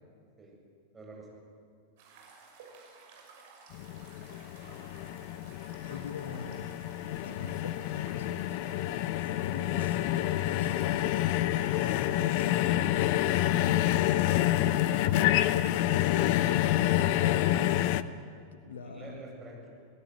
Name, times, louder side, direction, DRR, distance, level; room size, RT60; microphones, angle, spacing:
voice 1, 0.9-1.4 9.7-9.8 18.8-19.7, right 2 dB, 15° right, -1 dB, 7.6 m, -47 dB
sound 1, 2.0-17.7, right 4 dB, 50° right, 6.0 m, -54 dB
sound 2, 3.7-18.0, left 14 dB, 45° left, 0.7 m, -28 dB
voice 2, 5.8-6.7 7.2-8.5 9.2-14.6 15.1-16.6 16.9-19.2, left 6 dB, 65° left, 9 dB, 1.5 m, -43 dB
29.0 x 18.0 x 8.2 m, 2.4 s
figure-of-eight pair, 90°, 0 cm